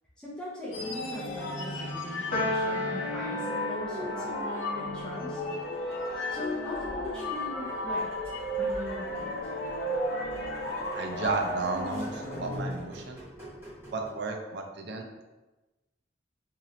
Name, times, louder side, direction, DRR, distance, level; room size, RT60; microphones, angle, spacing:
voice 1, 0.2-5.4 6.3-8.1 8.6-9.3, left 1 dB, 5° left, -7 dB, 0.5 m, -40 dB
sound 1, 0.7-12.7, left 1 dB, 80° left, 0.5 m, -34 dB
Piano, 2.3-8.8, left 1 dB, 45° left, 0.7 m, -37 dB
sound 2, 5.6-14.1, right 1 dB, 15° right, 1.4 m, -48 dB
voice 2, 10.9-13.2 13.9-15.1, right 3 dB, 65° right, 4 dB, 0.4 m, -33 dB
3.0 x 2.7 x 2.5 m, 1.1 s
head